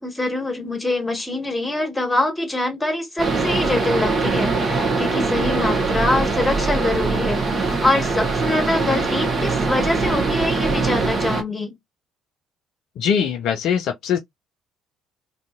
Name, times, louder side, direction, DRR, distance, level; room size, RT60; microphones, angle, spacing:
voice 1, 0.0-11.8, left 2 dB, 15° left, 1.4 m, -24 dB
sound 1, 3.2-11.4, right 3 dB, 40° right, 1.0 m, -22 dB
voice 2, 13.0-14.2, left 7 dB, 60° left, 0.3 m, -21 dB
2.7 x 2.6 x 2.3 m
figure-of-eight pair, 50°, 0 cm